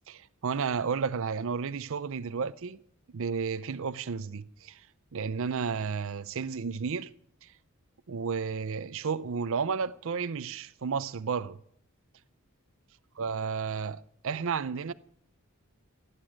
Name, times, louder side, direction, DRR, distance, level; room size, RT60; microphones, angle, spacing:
voice 1, 0.1-2.8 3.1-4.9 5.1-7.1 7.4-7.5 8.1-11.6 13.2-14.9, right 5 dB, 65° right, 0.5 m, -32 dB
18.0 x 8.3 x 8.7 m
head